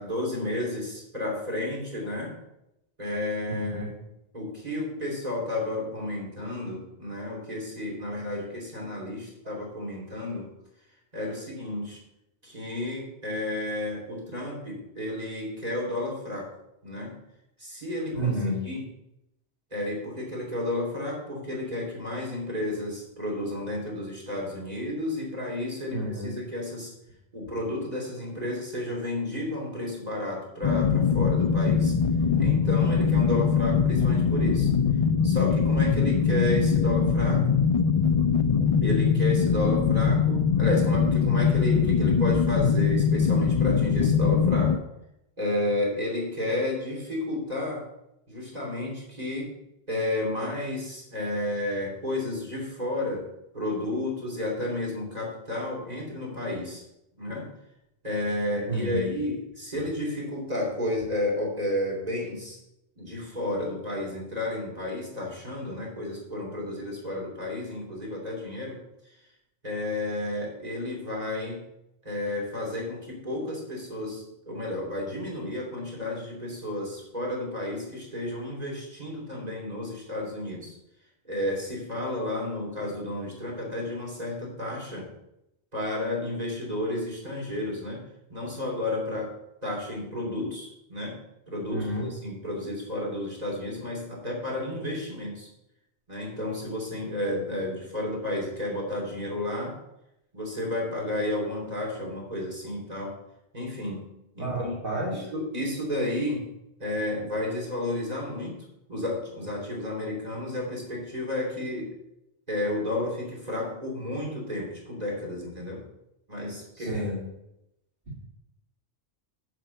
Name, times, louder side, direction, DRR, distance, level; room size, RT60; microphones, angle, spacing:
voice 1, 0.0-2.4 3.0-3.9 4.3-10.5 11.1-12.0 12.4-16.5 16.8-17.2 17.6-18.3 18.6-18.9 19.7-26.9 27.3-31.9 32.4-34.7 35.2-37.5 38.8-44.9 45.4-47.8 48.3-49.5 49.9-53.3 53.5-56.8 57.2-57.5 58.0-62.6 63.0-68.8 69.1-69.2 69.6-71.6 72.0-80.8 81.2-85.1 85.7-88.0 88.3-89.3 89.6-91.2 91.5-95.5 96.1-99.8 100.3-103.2 103.5-104.0 104.3-104.8 105.3-106.5 106.8-108.6 108.9-111.9 112.5-115.8 116.3-117.0, left 1 dB, 35° right, -3 dB, 3.0 m, -32 dB
voice 2, 3.5-3.9 18.1-18.7 25.9-26.3 58.7-59.1 91.7-92.1 104.4-105.2 116.8-117.2, right 1 dB, 55° right, -8 dB, 2.5 m, -30 dB
sound 1, 30.6-44.8, left 6 dB, 50° left, 0.4 m, -22 dB
7.5 x 5.6 x 6.9 m, 0.85 s
omnidirectional pair, 1.1 m